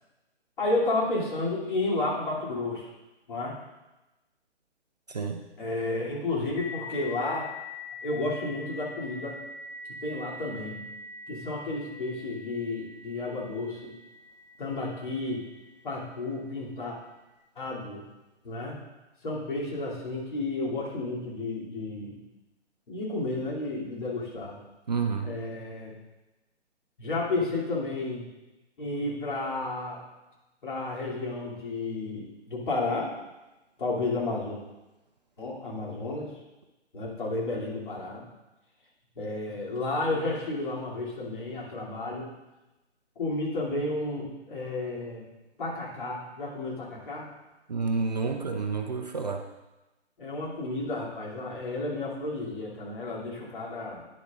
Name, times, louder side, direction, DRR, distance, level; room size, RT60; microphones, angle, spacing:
voice 1, 0.6-2.9 3.3-3.6 5.6-7.5 8.0-9.4 10.0-10.8 11.3-13.9 14.6-15.5 15.8-17.0 17.6-18.0 18.4-18.8 19.2-22.2 22.9-24.6 25.2-26.0 27.0-28.3 28.8-30.0 30.6-33.1 33.8-34.6 35.4-36.3 36.9-38.3 39.2-42.3 43.2-45.3 45.6-47.3 50.2-54.1, left 2 dB, 45° left, -5 dB, 2.8 m, -32 dB
voice 2, 5.1-5.4 24.9-25.3 47.7-49.4, right 4 dB, 35° right, 4 dB, 0.5 m, -29 dB
sound 1, 6.6-15.8, left 3 dB, 5° left, 0.6 m, -43 dB
11.5 x 10.0 x 2.5 m, 1.1 s
figure-of-eight pair, 140°, 35 cm